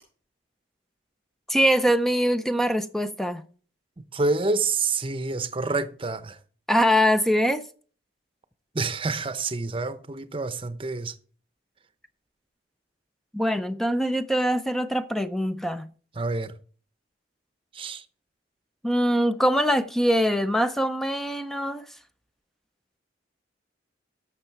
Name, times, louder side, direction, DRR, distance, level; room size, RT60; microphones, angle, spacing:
voice 1, 1.5-3.4 6.7-7.6 13.3-15.9 18.8-21.8, equal, ahead, 0.5 m, -23 dB
voice 2, 4.1-6.4 8.7-11.1 16.2-16.5 17.7-18.0, right 3 dB, 30° right, 0.8 m, -28 dB
12.0 x 6.7 x 4.6 m
head